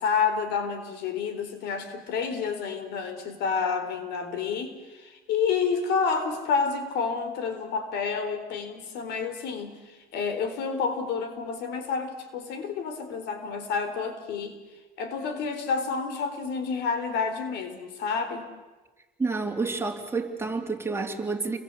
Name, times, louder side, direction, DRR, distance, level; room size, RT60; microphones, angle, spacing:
voice 1, 0.0-14.6 15.0-18.5, left 5 dB, 80° left, 9 dB, 4.0 m, -29 dB
voice 2, 19.2-21.6, right 3 dB, 15° right, 3 dB, 3.4 m, -29 dB
29.5 x 23.0 x 8.4 m, 1.2 s
cardioid pair, 110°, 17 cm